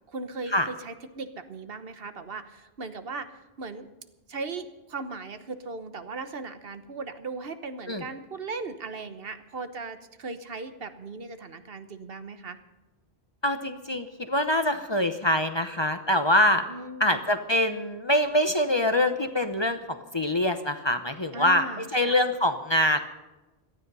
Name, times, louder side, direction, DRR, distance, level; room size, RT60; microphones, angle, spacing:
voice 1, 0.1-3.9 4.3-12.6 16.7-17.2 21.3-22.2, right 3 dB, 65° right, 10 dB, 1.3 m, -38 dB
voice 2, 13.4-16.6 17.0-21.6 21.9-23.0, left 1 dB, 30° left, 8 dB, 0.8 m, -24 dB
18.0 x 13.0 x 5.5 m, 1.1 s
omnidirectional pair, 1.1 m